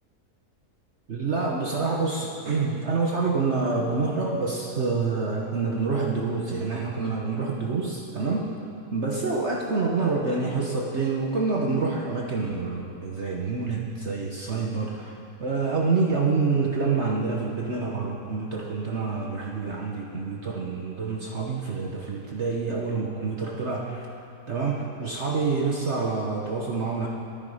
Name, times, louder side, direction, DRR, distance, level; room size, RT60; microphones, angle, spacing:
voice 1, 1.1-8.5 8.9-24.1 24.5-27.1, right 4 dB, 50° right, -2 dB, 1.3 m, -27 dB
15.0 x 12.5 x 5.0 m, 2.9 s
omnidirectional pair, 1.7 m